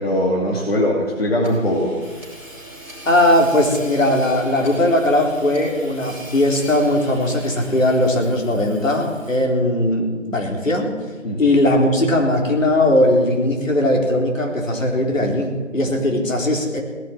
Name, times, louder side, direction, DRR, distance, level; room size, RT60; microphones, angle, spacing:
voice 1, 0.0-1.9 11.2-11.4, left 1 dB, 50° left, -2 dB, 2.6 m, -20 dB
Hammer / Sawing, 1.4-9.6, equal, 10° left, 3.8 m, -40 dB
voice 2, 3.1-11.0 11.4-16.8, left 1 dB, 70° left, 1 dB, 4.0 m, -18 dB
18.0 x 7.5 x 9.9 m, 1.4 s
figure-of-eight pair, 175°, 40 cm